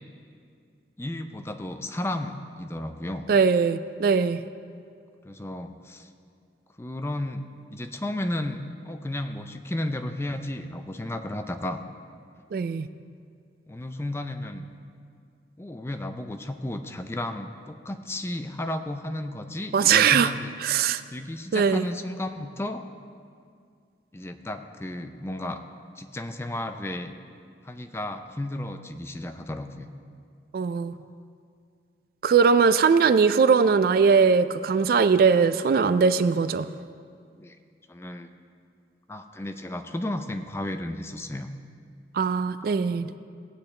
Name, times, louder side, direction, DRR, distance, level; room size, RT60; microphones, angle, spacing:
voice 1, 1.0-3.3 5.2-6.1 6.8-7.4 7.7-11.8 13.7-14.7 15.6-20.5 21.1-22.8 24.1-25.6 26.0-27.1 27.6-29.9 37.4-37.6 37.9-38.3 39.1-41.5, left 1 dB, 15° left, 7 dB, 0.4 m, -33 dB
voice 2, 3.3-4.4 12.5-12.9 19.7-20.3 20.6-21.0 21.5-21.9 30.5-30.9 32.2-36.7 42.1-43.1, right 5 dB, 55° right, 13 dB, 0.3 m, -20 dB
17.0 x 8.5 x 3.2 m, 2.2 s
head